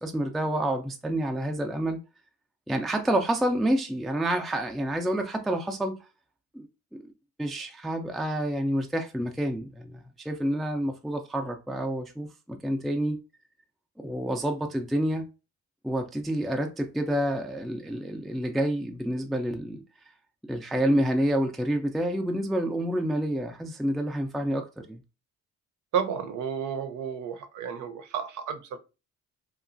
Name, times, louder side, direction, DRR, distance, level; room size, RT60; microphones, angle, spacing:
voice 1, 0.0-2.0 2.7-6.0 6.5-6.7 6.9-7.0 7.4-13.2 14.0-15.2 15.8-19.8 20.5-25.0, right 1 dB, ahead, 0.3 m, -28 dB
voice 2, 25.9-28.8, right 8 dB, 75° right, 0.6 m, -31 dB
2.8 x 2.3 x 2.5 m
cardioid pair, 90°, 30 cm